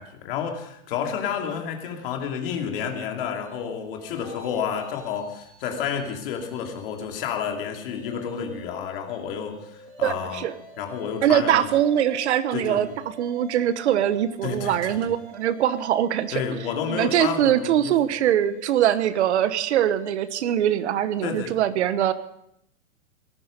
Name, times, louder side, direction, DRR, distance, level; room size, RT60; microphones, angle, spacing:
voice 1, 0.0-10.5 10.8-11.7 12.5-12.9 14.4-15.1 16.3-17.9 21.2-21.6, left 7 dB, 40° left, 3 dB, 2.6 m, -30 dB
sound 1, 3.3-7.4 7.8-21.3, right 3 dB, 20° right, 4.7 m, -47 dB
voice 2, 10.0-10.5 11.2-12.9 13.2-16.4 16.9-22.1, right 11 dB, 55° right, 13 dB, 1.2 m, -22 dB
18.5 x 14.0 x 5.2 m, 0.75 s
hypercardioid pair, 165°, 42 cm